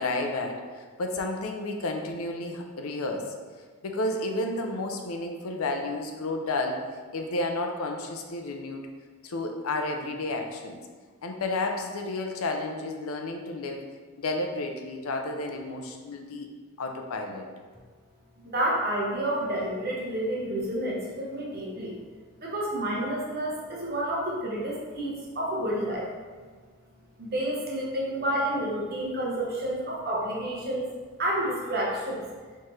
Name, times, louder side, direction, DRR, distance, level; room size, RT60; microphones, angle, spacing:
voice 1, 0.0-3.3 3.8-6.8 7.1-8.8 9.2-10.8 11.2-13.8 14.2-16.5 16.8-17.5, left 2 dB, 75° left, 3 dB, 0.5 m, -31 dB
voice 2, 18.4-22.0 22.4-26.1 27.2-30.9 31.2-32.2, right 1 dB, 45° right, -3 dB, 0.9 m, -29 dB
4.5 x 3.6 x 3.1 m, 1.5 s
head